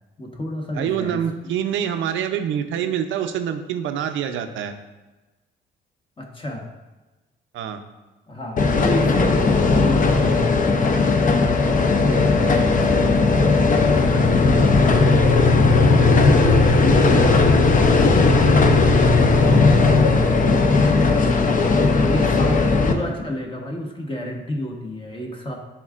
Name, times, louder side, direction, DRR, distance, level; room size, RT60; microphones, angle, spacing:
voice 1, 0.2-1.5 6.2-6.7 8.3-13.8 14.1-15.8 16.2-20.3 20.7-21.4 22.0-25.6, left 1 dB, 25° left, 0 dB, 1.2 m, -31 dB
voice 2, 0.7-4.7 7.5-7.8, right 9 dB, 80° right, 8 dB, 0.6 m, -26 dB
sound 1, 8.6-22.9, left 3 dB, 40° left, 0.8 m, -17 dB
11.0 x 3.7 x 2.5 m, 1.1 s
cardioid pair, 90°, 20 cm